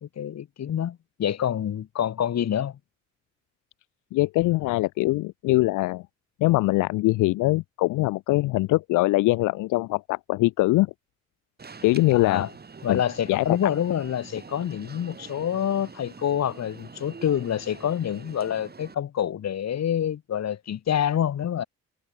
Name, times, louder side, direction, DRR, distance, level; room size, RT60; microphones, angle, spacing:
voice 1, 0.0-2.8 12.1-12.5 12.8-21.6, left 9 dB, 60° left, 3.2 m, -27 dB
voice 2, 4.1-6.0 6.4-10.9 11.8-12.4 12.9-13.0 13.3-13.6, left 19 dB, 85° left, 0.6 m, -22 dB
Alarm, 11.6-18.9, right 5 dB, 30° right, 5.4 m, -45 dB
cardioid pair, 90°, 30 cm